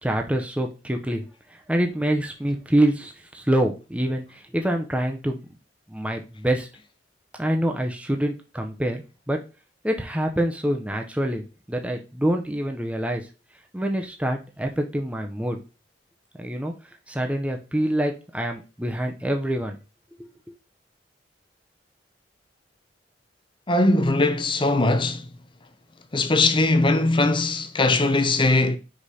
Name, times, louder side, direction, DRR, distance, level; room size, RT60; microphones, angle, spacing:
voice 1, 0.0-1.2 1.7-5.4 5.9-6.7 7.4-9.4 9.8-13.3 13.7-15.6 16.4-16.7 17.1-19.8 20.2-20.3, right 1 dB, 5° right, 0.7 m, -26 dB
voice 2, 23.7-25.3 26.1-28.8, left 2 dB, 30° left, 0.6 m, -20 dB
5.1 x 5.1 x 4.2 m
head